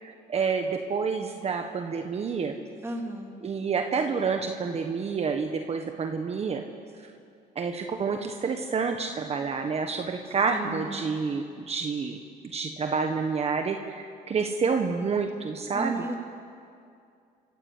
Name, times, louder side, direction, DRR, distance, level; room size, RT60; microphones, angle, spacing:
voice 1, 0.0-2.5 3.4-6.6 7.0-7.1 7.5-12.2 12.4-16.0, right 5 dB, 40° right, 4 dB, 1.4 m, -29 dB
voice 2, 2.8-3.4 10.5-11.0 15.7-16.2, right 1 dB, 15° right, 2 dB, 3.0 m, -34 dB
27.5 x 14.5 x 8.5 m, 2.4 s
cardioid pair, 110°, 17 cm